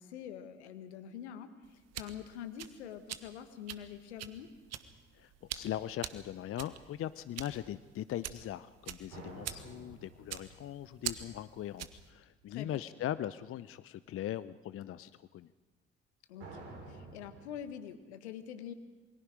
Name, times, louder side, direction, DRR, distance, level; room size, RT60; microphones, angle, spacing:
voice 1, 0.0-4.5 12.5-12.8 16.3-18.7, left 9 dB, 75° left, 11 dB, 1.6 m, -45 dB
sound 1, 1.6-12.1, right 11 dB, 50° right, 1.4 m, -45 dB
voice 2, 5.1-15.5, left 12 dB, 40° left, 16 dB, 0.7 m, -40 dB
sound 2, 9.1-12.1 16.4-17.4, right 2 dB, 70° right, 5.0 m, -51 dB
27.5 x 23.0 x 5.0 m, 1.3 s
figure-of-eight pair, 50°, 34 cm